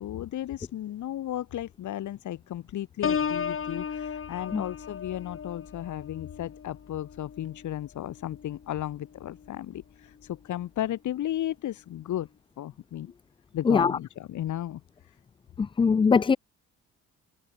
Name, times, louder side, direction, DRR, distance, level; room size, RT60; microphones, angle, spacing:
voice 1, 0.0-12.3 12.6-13.1 13.5-15.2, left 12 dB, 75° left, 3.1 m, -34 dB
Piano, 3.0-8.6 9.1-9.5, left 7 dB, 45° left, 4.5 m, -35 dB
voice 2, 15.6-16.4, left 5 dB, 15° left, 0.3 m, -21 dB
cardioid pair, 90°, 30 cm